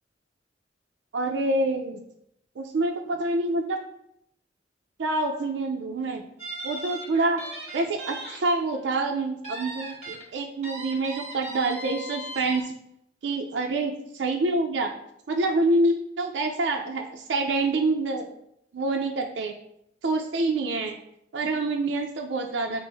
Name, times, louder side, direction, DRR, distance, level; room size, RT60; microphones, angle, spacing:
voice 1, 1.1-2.0 2.6-3.8 5.0-6.2 6.6-7.4 7.7-12.7 13.2-13.9 14.2-14.9 15.3-18.3 18.7-19.5 20.0-21.0 21.3-22.8, right 2 dB, 85° right, 2 dB, 0.4 m, -26 dB
sound 1, 6.4-8.4 8.7-8.9 9.4-10.2 10.6-12.6, right 1 dB, 40° right, 1.3 m, -38 dB
6.0 x 2.0 x 3.3 m, 0.75 s
head